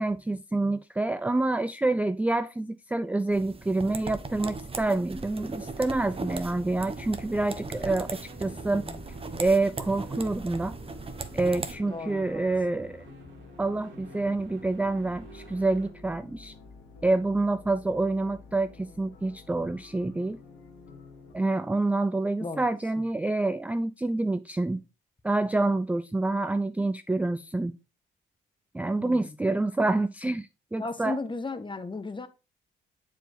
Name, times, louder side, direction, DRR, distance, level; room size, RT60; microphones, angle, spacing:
voice 1, 0.0-8.8 9.4-10.7 11.3-13.0 13.6-16.5 17.0-20.4 21.3-24.8 25.2-27.8 28.7-31.2, right 2 dB, 5° right, 0.4 m, -27 dB
sound 1, 3.3-11.8, right 3 dB, 25° right, 1.0 m, -38 dB
sound 2, 5.1-15.9, right 2 dB, 65° right, 1.9 m, -51 dB
sound 3, 5.8-21.3, left 2 dB, 85° left, 1.7 m, -50 dB
voice 2, 11.8-12.4 22.4-22.7 29.0-29.4 30.8-32.3, left 3 dB, 25° left, 1.1 m, -36 dB
7.7 x 4.7 x 3.2 m
supercardioid pair, 60°, 20 cm